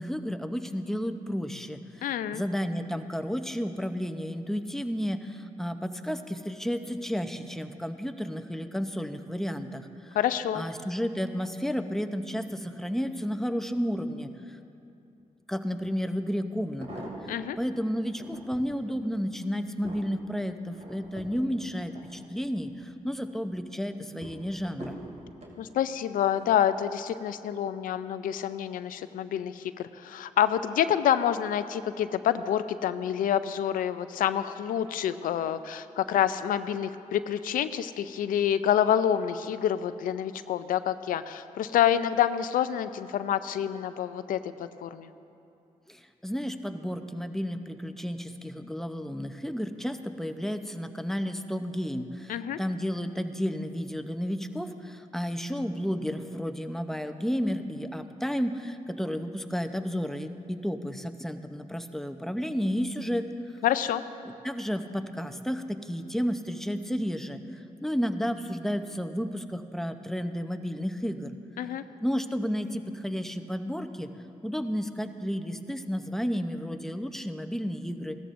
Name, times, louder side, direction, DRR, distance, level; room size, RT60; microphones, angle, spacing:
voice 1, 0.0-10.2 10.5-14.6 15.5-25.0 45.9-63.3 64.2-71.3 72.0-74.1 74.4-78.2, equal, 5° left, 8 dB, 0.7 m, -32 dB
voice 2, 2.0-2.4 10.1-10.6 17.3-17.6 25.6-45.1 52.3-52.6 63.6-64.0 71.6-71.8, left 10 dB, 85° left, 12 dB, 0.4 m, -27 dB
sound 1, 15.8-15.9 16.5-17.6 18.1-18.7 19.3-22.7 23.1-23.6 24.2-25.6 26.3-26.7 27.0-27.1, right 1 dB, 55° right, 2.6 m, -45 dB
16.5 x 13.0 x 2.6 m, 2.7 s
cardioid pair, 60°, 14 cm